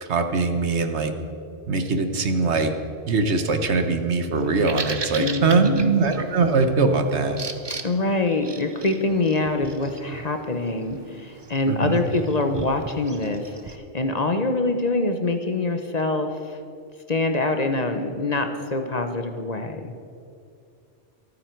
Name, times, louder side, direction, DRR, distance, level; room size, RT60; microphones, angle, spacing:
voice 1, 0.0-1.1 1.7-2.7 3.1-7.4 11.7-12.0, right 3 dB, 70° right, 7 dB, 1.4 m, -22 dB
Bird vocalization bird call bird song, 4.4-13.8, right 4 dB, 25° right, 0.7 m, -38 dB
voice 2, 5.2-6.1 7.8-16.6 17.1-19.9, left 2 dB, 40° left, 6 dB, 1.0 m, -25 dB
26.0 x 9.4 x 4.6 m, 2.5 s
omnidirectional pair, 1.2 m